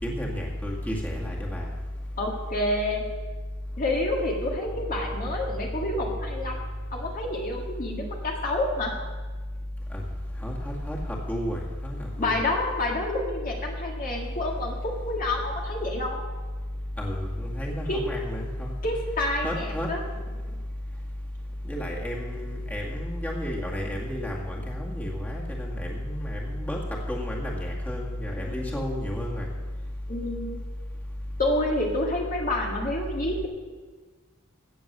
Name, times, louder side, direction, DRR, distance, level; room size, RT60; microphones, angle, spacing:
voice 1, 0.0-1.7 9.9-10.0 10.4-12.4 17.0-18.7 19.4-19.9 21.6-29.5, equal, 10° left, -3 dB, 2.0 m, -31 dB
voice 2, 2.2-3.0 3.8-6.6 6.9-8.9 12.2-16.2 17.9-18.0 18.8-20.0 28.4-28.8 30.1-30.6 31.4-33.5, left 1 dB, 40° left, -1 dB, 1.9 m, -28 dB
16.5 x 7.1 x 6.7 m, 1.4 s
head